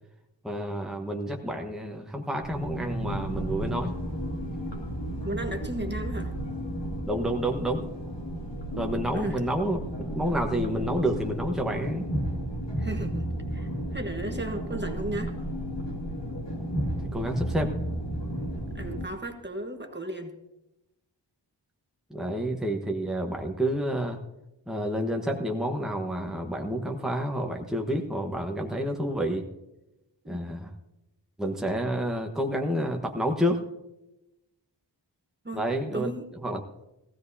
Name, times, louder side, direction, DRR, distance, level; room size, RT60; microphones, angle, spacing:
voice 1, 0.4-4.0 7.1-7.9 8.8-12.1 17.1-17.7 22.1-24.2 24.7-29.5 30.3-30.7 31.4-33.6 35.5-36.1 36.4-36.6, equal, ahead, 2 dB, 1.2 m, -29 dB
sound 1, 2.4-19.0, right 1 dB, 70° left, 2.4 m, -33 dB
voice 2, 5.2-6.3 9.1-9.4 12.8-15.3 18.7-20.4 30.3-30.8 35.4-35.7 35.9-36.3, right 1 dB, 25° right, 4 dB, 1.3 m, -35 dB
18.5 x 16.0 x 2.8 m, 0.93 s
wide cardioid pair, 75°, 44 cm